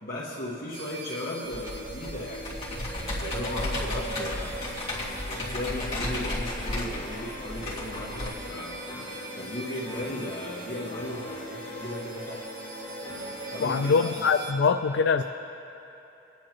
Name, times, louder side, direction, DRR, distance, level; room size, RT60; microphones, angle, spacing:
voice 1, 0.0-4.7 5.3-8.8 9.3-12.5 13.5-14.4, left 1 dB, 50° left, -7 dB, 1.4 m, -36 dB
sound 1, 0.7-14.5, right 2 dB, 70° right, 1.6 m, -41 dB
Computer keyboard, 1.5-8.3, left 1 dB, 30° left, 2.2 m, -34 dB
sound 2, 4.5-13.7, left 2 dB, 15° left, 3.4 m, -42 dB
voice 2, 13.6-15.2, left 5 dB, 70° left, 7 dB, 0.4 m, -23 dB
22.5 x 9.9 x 3.0 m, 2.9 s
head